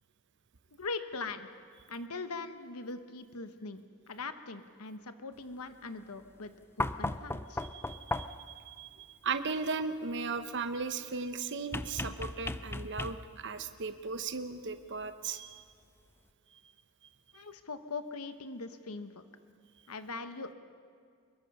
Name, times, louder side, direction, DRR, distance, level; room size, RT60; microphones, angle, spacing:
voice 1, 0.7-1.5 1.9-6.5 6.8-7.6 17.3-19.2 19.9-20.5, left 3 dB, 80° left, 9 dB, 1.2 m, -41 dB
sound 1, 6.8-8.5 11.7-13.5 15.0-15.1, left 2 dB, 10° left, 0.4 m, -36 dB
voice 2, 7.6-15.6, right 4 dB, 55° right, 9 dB, 0.9 m, -37 dB
24.5 x 22.0 x 5.5 m, 2.2 s
head